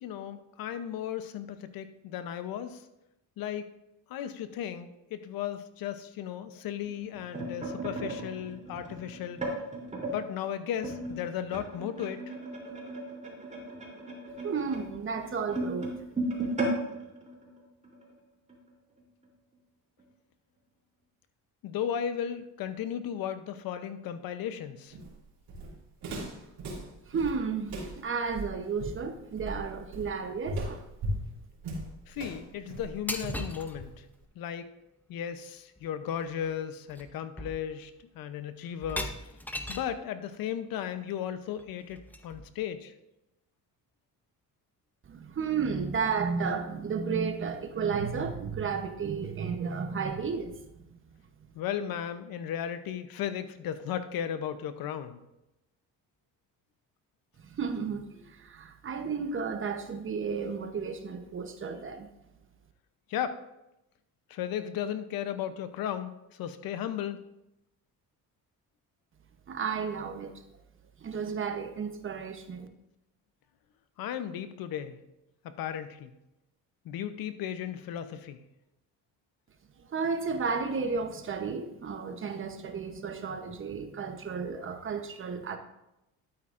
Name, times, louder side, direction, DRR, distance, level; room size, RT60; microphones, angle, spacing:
voice 1, 0.0-2.8 3.4-3.6 4.1-9.4 10.1-12.2 21.6-24.9 32.1-33.9 34.4-34.7 35.1-39.1 39.7-42.0 42.2-42.9 51.5-55.2 63.1-63.4 64.3-66.1 66.4-67.2 74.0-75.0 75.4-76.1 76.9-78.4, left 9 dB, 75° left, 10 dB, 0.8 m, -35 dB
sound 1, 6.9-10.2 10.8-18.1 18.5-18.7 19.0-19.3 20.0-20.1, right 2 dB, 20° right, 3.2 m, -36 dB
voice 2, 14.4-15.9 27.1-30.8 45.1-50.6 50.9-51.0 57.4-62.1 69.5-70.3 71.0-72.7 79.9-85.6, right 5 dB, 35° right, 7 dB, 0.9 m, -33 dB
Walk footsteps, 24.9-34.2, right 1 dB, 75° right, 3.4 m, -38 dB
sound 2, 33.1-33.8 35.8-35.9 36.2-36.5 36.9-37.1 37.4-37.9 38.8-40.0 41.6-42.6, equal, 5° left, 0.7 m, -38 dB
12.0 x 8.9 x 2.5 m, 0.89 s
cardioid pair, 115°, 35 cm